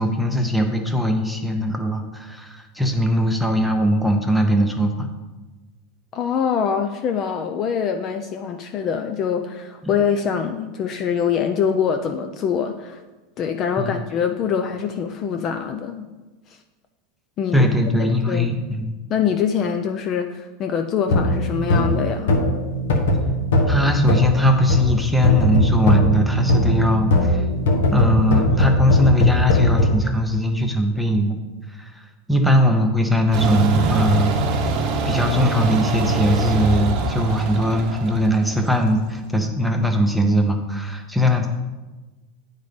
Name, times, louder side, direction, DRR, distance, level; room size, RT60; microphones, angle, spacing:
voice 1, 0.0-5.1 13.8-14.0 17.5-18.9 23.7-27.4 27.9-31.4 31.7-34.4 35.0-41.5, equal, ahead, 3 dB, 0.7 m, -20 dB
voice 2, 6.1-13.0 13.4-16.1 17.4-17.7 18.0-18.5 19.1-22.3, left 7 dB, 30° left, 6 dB, 0.4 m, -24 dB
sound 1, 21.1-25.0 25.2-29.9, left 1 dB, 85° left, 1.3 m, -19 dB
sound 2, 33.3-39.1, right 2 dB, 40° right, 0.9 m, -23 dB
8.9 x 4.0 x 5.1 m, 1.2 s
supercardioid pair, 155°, 0 cm